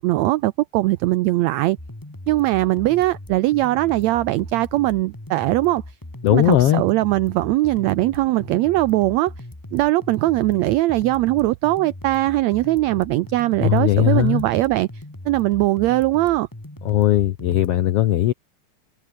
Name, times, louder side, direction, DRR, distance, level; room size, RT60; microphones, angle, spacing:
voice 1, 0.0-1.8 2.3-5.8 6.3-9.3 9.7-16.5, right 17 dB, 85° right, 1.5 m, -20 dB
sound 1, 1.8-17.8, left 1 dB, 10° left, 1.1 m, -39 dB
voice 2, 6.2-6.8 13.6-14.4 16.8-18.3, left 13 dB, 80° left, 1.3 m, -18 dB
omnidirectional pair, 3.8 m